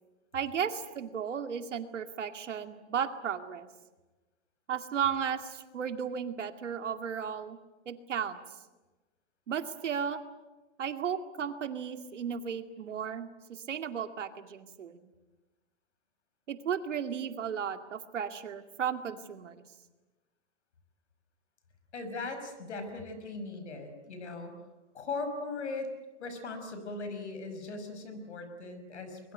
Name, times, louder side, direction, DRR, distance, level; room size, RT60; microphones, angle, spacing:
voice 1, 0.3-3.7 4.7-7.6 7.9-8.4 9.5-10.2 10.8-15.0 16.5-19.6, right 7 dB, 90° right, 8 dB, 2.3 m, -34 dB
voice 2, 21.9-24.5 24.9-25.9 26.2-29.3, left 3 dB, 70° left, 8 dB, 5.5 m, -39 dB
23.0 x 22.0 x 9.4 m, 1.1 s
hypercardioid pair, 180°, 36 cm